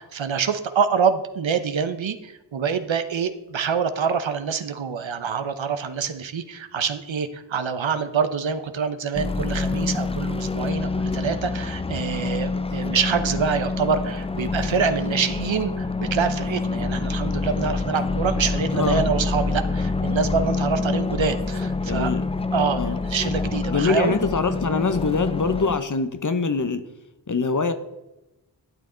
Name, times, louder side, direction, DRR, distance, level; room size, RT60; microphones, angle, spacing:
voice 1, 0.0-22.1 22.5-24.2, right 6 dB, 75° right, 10 dB, 0.9 m, -26 dB
sound 1, 9.1-25.8, left 3 dB, 15° left, 0.3 m, -26 dB
voice 2, 18.7-19.1 21.8-22.2 22.8-23.0 23.7-26.9 27.3-27.7, left 4 dB, 40° left, 11 dB, 0.8 m, -24 dB
12.0 x 8.5 x 3.9 m, 1.0 s
wide cardioid pair, 50°, 46 cm